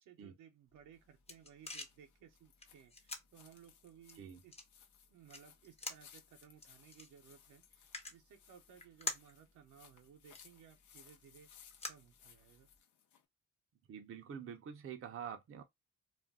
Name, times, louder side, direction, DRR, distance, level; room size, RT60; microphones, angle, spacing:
voice 1, 0.0-4.7 5.1-12.7, right 8 dB, 80° right, 0.8 m, -61 dB
sound 1, 0.7-12.8, left 3 dB, 20° left, 0.8 m, -50 dB
sound 2, 1.0-13.2, left 8 dB, 75° left, 0.7 m, -64 dB
voice 2, 13.9-15.6, right 8 dB, 45° right, 0.6 m, -46 dB
2.5 x 2.2 x 3.4 m
cardioid pair, 90°, 30 cm